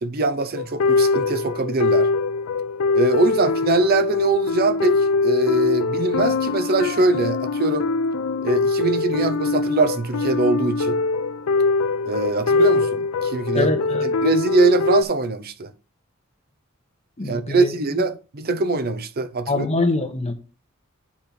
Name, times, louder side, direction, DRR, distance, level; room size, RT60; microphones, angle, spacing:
voice 1, 0.0-2.1 2.9-7.9 8.4-11.0 12.1-13.7 14.0-15.7 17.3-19.7, right 2 dB, 45° right, 0.7 m, -22 dB
sound 1, 0.6-15.0, left 3 dB, 80° left, 0.5 m, -22 dB
voice 2, 13.5-14.1 17.2-17.7 19.5-20.3, left 2 dB, 30° left, 1.2 m, -24 dB
8.6 x 3.4 x 5.8 m
head